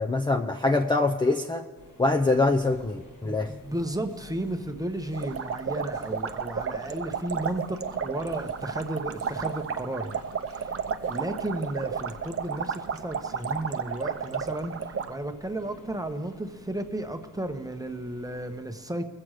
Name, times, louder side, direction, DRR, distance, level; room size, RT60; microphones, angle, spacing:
voice 1, 0.0-1.7 2.0-3.5, left 2 dB, 15° left, 1 dB, 0.5 m, -24 dB
sound 1, 1.8-18.6, left 1 dB, 75° left, 4.2 m, -52 dB
voice 2, 3.2-10.2 10.5-19.1, right 1 dB, 10° right, 6 dB, 0.9 m, -34 dB
sound 2, 5.1-15.1, right 6 dB, 45° right, 0.6 m, -32 dB
21.0 x 7.7 x 4.8 m, 1.4 s
wide cardioid pair, 120°, 33 cm